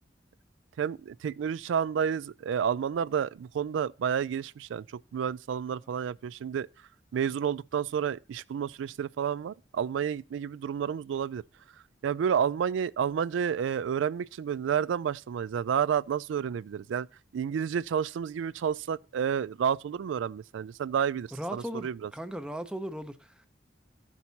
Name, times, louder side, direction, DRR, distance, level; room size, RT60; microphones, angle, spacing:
voice 1, 0.8-4.8 5.1-6.7 7.1-11.4 12.0-17.1 17.3-22.1, right 8 dB, 85° right, 0.3 m, -30 dB
voice 2, 21.3-23.5, equal, 5° right, 0.5 m, -37 dB
14.5 x 6.1 x 2.7 m
head